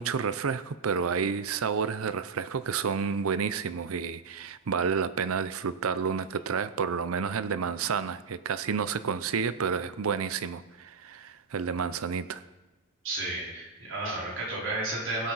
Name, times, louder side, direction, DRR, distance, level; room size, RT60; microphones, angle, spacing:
voice 1, 0.0-12.4, right 6 dB, 90° right, 14 dB, 0.6 m, -30 dB
voice 2, 13.0-15.3, right 2 dB, 65° right, -6 dB, 4.2 m, -32 dB
20.0 x 8.5 x 4.1 m, 1.1 s
head